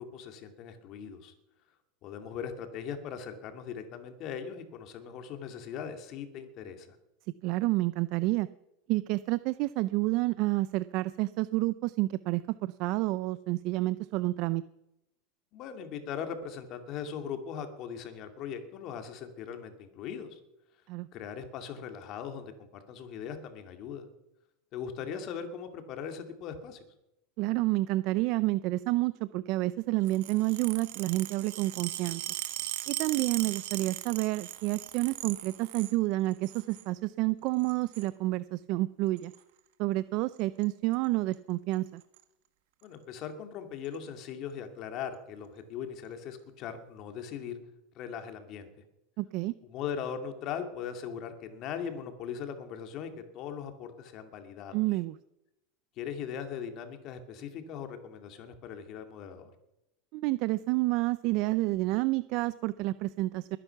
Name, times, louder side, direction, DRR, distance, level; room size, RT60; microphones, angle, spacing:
voice 1, 0.0-1.3 2.0-7.0 15.5-20.4 21.1-24.0 24.7-26.8 42.8-47.6 48.0-48.7 49.7-54.8 56.0-59.5, left 7 dB, 45° left, 7 dB, 2.3 m, -39 dB
voice 2, 7.4-8.5 8.9-14.6 20.9-21.1 27.4-32.2 32.9-39.3 39.8-42.0 49.2-49.5 54.7-55.2 60.1-63.6, right 19 dB, 50° right, 16 dB, 0.4 m, -29 dB
sound 1, 30.0-36.0 36.3-36.9 37.6-38.1 39.2-39.4 40.4-40.6 40.9-41.1 41.3-41.4 41.7-42.2 42.8-42.9 43.8-44.0, right 15 dB, 70° right, 1.6 m, -39 dB
21.5 x 10.0 x 5.9 m, 0.91 s
supercardioid pair, 145°, 0 cm